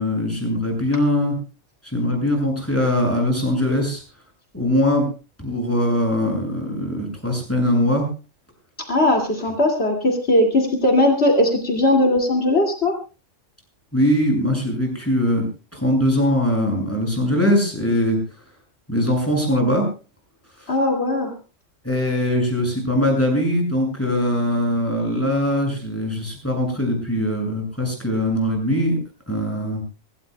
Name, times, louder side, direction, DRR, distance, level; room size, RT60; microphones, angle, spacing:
voice 1, 0.0-1.4 1.8-4.0 4.5-5.1 5.4-8.1 13.9-15.5 15.7-18.2 18.9-19.9 20.6-20.7 21.8-29.0 29.3-29.8, left 1 dB, 10° left, 1 dB, 6.9 m, -21 dB
voice 2, 8.9-12.9 20.7-21.3, left 1 dB, 55° left, 1 dB, 2.7 m, -19 dB
25.5 x 16.5 x 2.3 m, 0.33 s
omnidirectional pair, 1.3 m